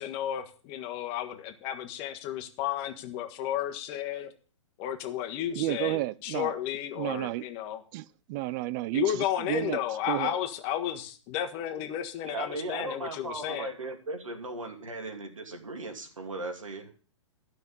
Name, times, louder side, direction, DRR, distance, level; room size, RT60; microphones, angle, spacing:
voice 1, 0.0-4.3 4.8-7.8 8.9-13.7, left 11 dB, 35° left, 1.6 m, -33 dB
voice 2, 5.6-6.6 7.0-7.4 7.9-9.8 10.1-10.4, right 16 dB, 40° right, 0.6 m, -31 dB
voice 3, 12.2-16.9, right 2 dB, 85° right, 2.8 m, -37 dB
13.0 x 5.9 x 7.1 m
hypercardioid pair, 120°, 16 cm